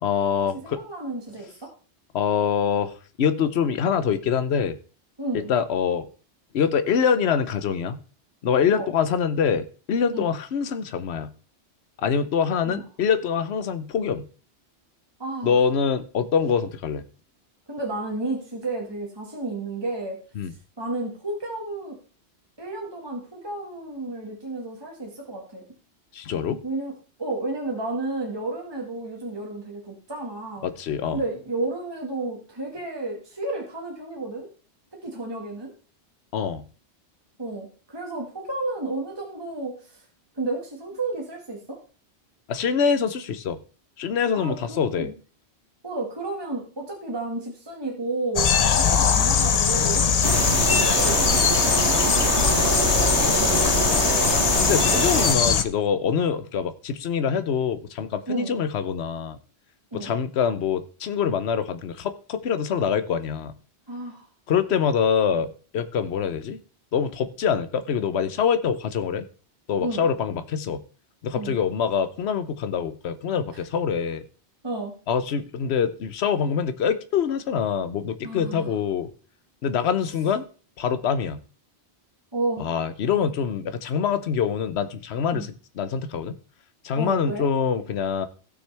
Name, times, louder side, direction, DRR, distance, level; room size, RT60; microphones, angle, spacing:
voice 1, 0.0-0.8 2.1-2.9 3.2-4.8 5.5-6.1 6.5-8.0 8.4-11.3 12.0-14.3 15.4-17.0 20.4-20.5 26.1-26.6 30.6-31.2 36.3-36.6 42.5-43.6 44.0-45.1 48.8-49.0 50.7-50.9 54.6-59.4 59.9-63.5 64.5-66.6 66.9-69.2 69.7-70.8 71.2-74.2 75.1-79.1 79.6-80.4 80.8-81.4 82.6-85.5 85.8-86.4 86.8-88.3, left 7 dB, 70° left, 1.1 m, -25 dB
voice 2, 0.6-1.7 5.2-5.5 8.7-8.9 10.1-10.3 12.6-12.9 15.2-15.6 17.7-20.2 20.8-22.0 22.6-25.6 26.6-26.9 27.2-30.7 31.1-34.5 35.0-35.7 37.4-40.0 40.3-41.8 44.3-45.1 45.8-48.5 48.8-50.1 50.7-53.6 58.3-58.5 59.9-60.1 63.9-64.3 69.8-70.1 71.3-71.5 73.5-73.6 74.6-74.9 78.2-78.8 82.3-82.7 85.3-85.5 86.9-87.5, right 2 dB, 20° right, 1.9 m, -32 dB
sound 1, 48.4-55.6, left 7 dB, 45° left, 0.6 m, -21 dB
sound 2, 50.2-55.4, right 5 dB, 80° right, 1.4 m, -25 dB
16.0 x 6.2 x 3.4 m
omnidirectional pair, 1.1 m